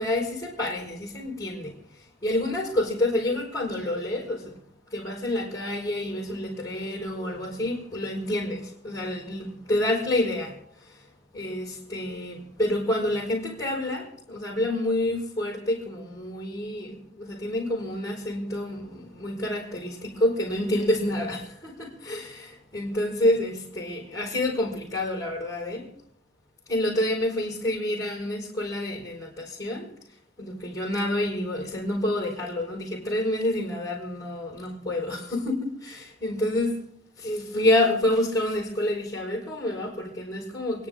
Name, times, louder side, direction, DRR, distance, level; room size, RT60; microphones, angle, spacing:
voice 1, 0.0-4.5 4.9-11.0 11.3-25.9 26.7-29.9 30.4-36.8 37.2-40.9, left 1 dB, 20° left, 5.4 m, -28 dB
29.5 x 11.0 x 3.8 m
head